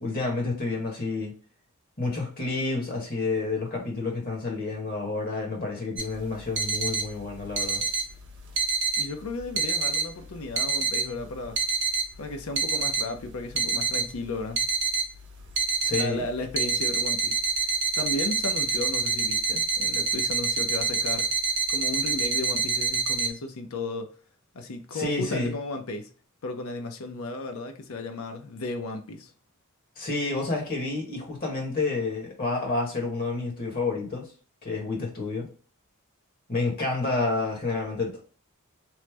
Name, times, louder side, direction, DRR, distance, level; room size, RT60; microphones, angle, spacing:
voice 1, 0.0-1.4 2.0-7.8 15.8-16.2 24.9-25.5 30.0-34.3 34.6-35.5 36.5-38.2, left 3 dB, 45° left, 1.2 m, -29 dB
sound 1, 6.0-23.3, right 4 dB, 55° right, 0.8 m, -27 dB
voice 2, 9.0-11.6 12.2-14.7 15.9-17.4 18.0-21.3 21.7-24.1 24.5-26.1 26.4-29.3, left 2 dB, 75° left, 0.6 m, -34 dB
3.1 x 2.0 x 3.2 m
head